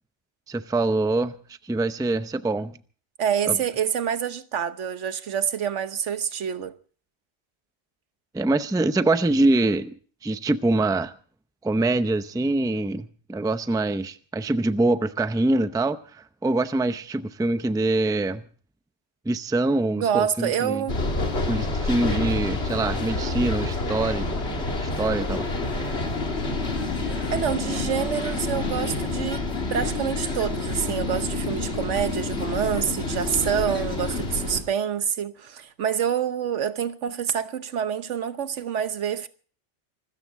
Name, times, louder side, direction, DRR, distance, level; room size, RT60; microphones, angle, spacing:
voice 1, 0.5-1.4 1.6-2.8 3.5-3.6 8.3-10.0 10.2-11.1 11.6-18.4 19.3-20.8 21.5-24.3 24.6-25.5, right 2 dB, 5° right, 0.5 m, -24 dB
voice 2, 3.2-6.7 20.0-21.0 27.3-29.4 29.7-39.3, right 8 dB, 85° right, 1.3 m, -27 dB
sound 1, 20.9-34.6, left 2 dB, 65° left, 2.7 m, -28 dB
25.0 x 13.5 x 3.8 m
omnidirectional pair, 1.2 m